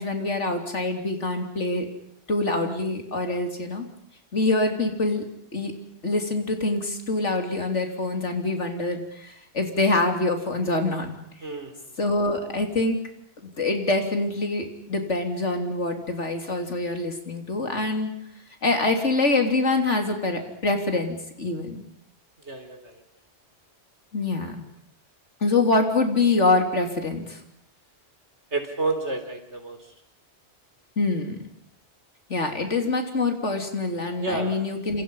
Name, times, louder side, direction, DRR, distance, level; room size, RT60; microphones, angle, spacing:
voice 1, 0.0-1.9 2.3-3.9 4.3-5.2 5.5-5.7 6.0-11.2 12.0-13.0 13.6-18.1 18.6-21.8 24.1-24.7 25.4-27.4 31.0-31.4 32.3-35.0, left 2 dB, 85° left, 4 dB, 3.6 m, -25 dB
voice 2, 22.5-22.8 28.5-29.8 34.2-34.5, right 2 dB, 70° right, 6 dB, 4.0 m, -29 dB
29.5 x 27.0 x 5.6 m, 0.70 s
omnidirectional pair, 1.2 m